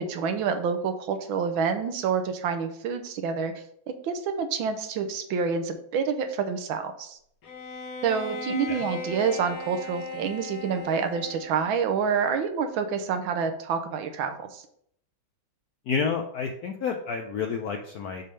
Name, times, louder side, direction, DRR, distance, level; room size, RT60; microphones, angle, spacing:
voice 1, 0.0-3.5 3.9-7.2 8.0-14.6, right 6 dB, 75° right, 7 dB, 1.5 m, -28 dB
Bowed string instrument, 7.4-11.8, left 3 dB, 55° left, 1.5 m, -38 dB
voice 2, 15.9-18.2, left 5 dB, 75° left, 3 dB, 0.9 m, -29 dB
6.6 x 3.5 x 5.3 m, 0.68 s
omnidirectional pair, 2.2 m